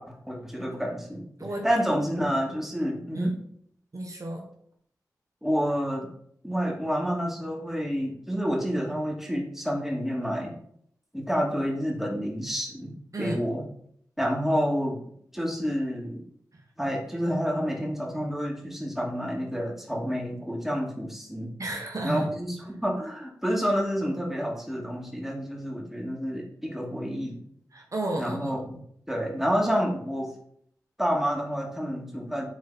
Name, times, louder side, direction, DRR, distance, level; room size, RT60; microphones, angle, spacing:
voice 1, 0.0-1.2 1.6-3.3 5.4-6.1 6.4-10.5 11.1-12.9 13.2-13.6 14.2-15.0 15.3-16.2 16.8-21.5 22.0-27.4 28.2-28.7 29.1-30.3 31.0-32.5, equal, 5° right, -1 dB, 2.6 m, -29 dB
voice 2, 3.9-4.5 13.1-13.5 16.5-16.6 21.6-22.3 27.7-28.5, right 1 dB, 50° right, 1 dB, 1.2 m, -32 dB
9.5 x 3.9 x 4.3 m, 0.66 s
cardioid pair, 40°, 7 cm